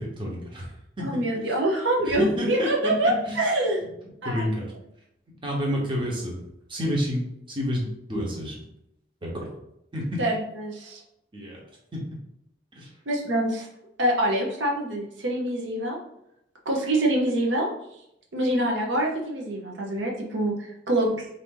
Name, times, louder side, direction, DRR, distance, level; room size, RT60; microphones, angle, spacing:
voice 1, 0.0-1.6 2.0-3.5 4.2-4.7 5.4-6.4 6.7-7.2 7.5-8.7 9.2-9.5 9.9-10.2 11.3-11.6 11.9-12.0 12.7-12.9, equal, 30° right, -3 dB, 1.0 m, -30 dB
voice 2, 1.0-3.8 4.2-4.4 10.2-11.0 13.1-13.7 14.0-16.0 16.6-17.7 18.3-21.3, right 1 dB, 85° right, -1 dB, 0.8 m, -25 dB
4.0 x 2.7 x 3.8 m, 0.80 s
head